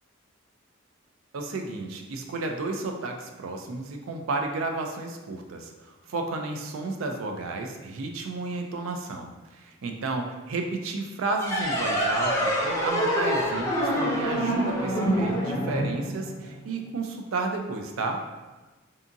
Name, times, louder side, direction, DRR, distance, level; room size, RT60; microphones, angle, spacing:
voice 1, 1.3-18.2, right 3 dB, 75° right, 3 dB, 0.4 m, -32 dB
sound 1, 11.4-16.6, equal, 15° left, 0.4 m, -26 dB
2.7 x 2.4 x 2.5 m, 1.2 s
head